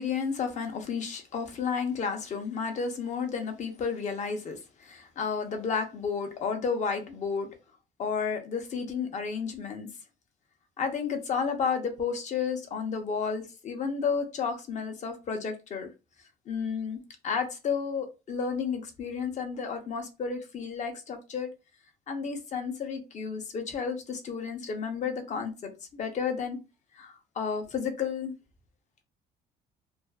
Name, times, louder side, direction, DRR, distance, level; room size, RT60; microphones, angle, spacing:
voice 1, 0.0-7.5 8.0-9.9 10.8-15.9 16.5-21.5 22.1-26.6 26.9-28.3, left 6 dB, 45° left, 0.7 m, -32 dB
2.5 x 2.4 x 2.3 m
cardioid pair, 110°, 17 cm